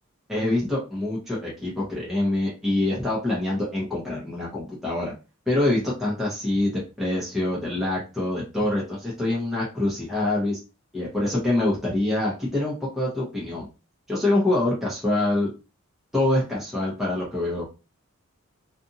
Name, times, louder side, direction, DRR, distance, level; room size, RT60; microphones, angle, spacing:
voice 1, 0.3-5.1 5.5-10.6 10.9-13.7 14.1-15.5 16.1-17.6, left 1 dB, ahead, -6 dB, 0.8 m, -25 dB
2.6 x 2.4 x 2.6 m, 0.30 s
head